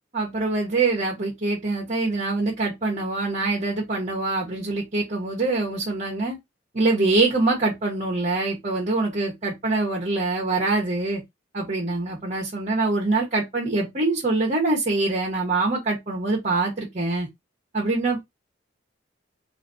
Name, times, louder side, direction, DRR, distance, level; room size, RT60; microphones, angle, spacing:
voice 1, 0.1-6.4 6.7-11.2 11.5-17.3 17.7-18.2, right 3 dB, 40° right, 1.2 m, -24 dB
4.1 x 2.6 x 4.2 m
head